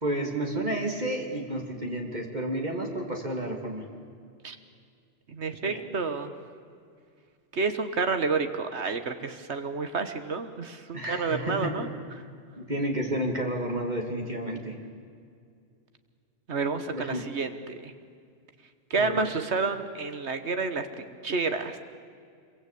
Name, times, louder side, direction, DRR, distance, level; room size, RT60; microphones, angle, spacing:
voice 1, 0.0-3.8 5.6-6.0 10.9-11.8 12.6-14.8 16.9-17.3 19.0-19.3, right 1 dB, 40° right, 2 dB, 3.0 m, -31 dB
voice 2, 5.3-6.3 7.5-11.9 16.5-17.9 18.9-21.8, right 4 dB, 80° right, 9 dB, 1.6 m, -30 dB
26.5 x 23.5 x 8.6 m, 2.3 s
omnidirectional pair, 1.1 m